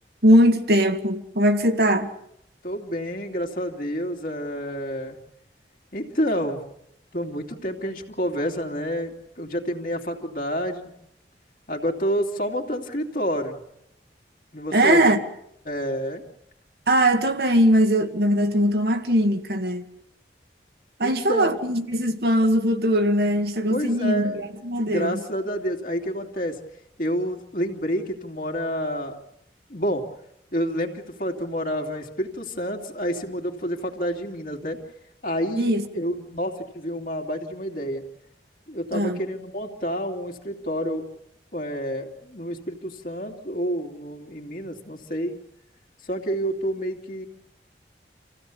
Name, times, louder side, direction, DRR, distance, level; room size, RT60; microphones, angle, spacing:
voice 1, 0.2-2.1 14.7-15.2 16.9-19.9 21.0-25.2 35.6-35.8 38.9-39.2, equal, 60° right, 1.8 m, -20 dB
voice 2, 2.6-5.2 5.9-6.6 7.1-10.9 11.7-13.6 14.5-15.0 15.6-16.2 21.0-21.6 23.7-24.4 24.8-26.6 27.0-29.2 29.7-30.0 30.5-34.8 35.2-38.0 38.7-41.0 41.5-45.4 46.0-47.3, equal, 50° left, 2.7 m, -29 dB
27.5 x 16.0 x 8.6 m
head